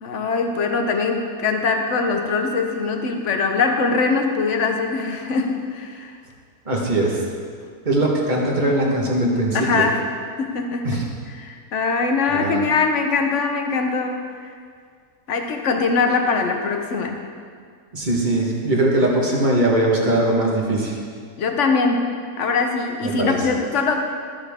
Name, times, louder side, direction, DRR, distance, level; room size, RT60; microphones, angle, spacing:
voice 1, 0.0-6.2 9.5-10.1 10.4-10.9 11.3-14.5 15.3-17.2 21.4-22.1 22.4-24.1, left 4 dB, 55° left, 4 dB, 1.2 m, -22 dB
voice 2, 6.6-7.2 7.8-9.9 10.8-11.0 12.3-12.6 17.9-21.0 23.0-23.4, right 1 dB, 30° right, -2 dB, 1.6 m, -20 dB
13.0 x 9.1 x 3.6 m, 2.1 s
omnidirectional pair, 1.6 m